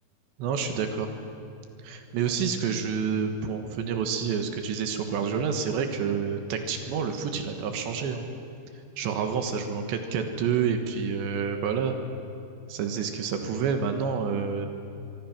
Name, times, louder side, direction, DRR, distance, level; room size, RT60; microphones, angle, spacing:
voice 1, 0.4-1.1 1.8-8.2 9.0-12.0 12.7-14.7, right 6 dB, 75° right, 6 dB, 3.6 m, -28 dB
24.0 x 24.0 x 6.0 m, 2.7 s
omnidirectional pair, 5.3 m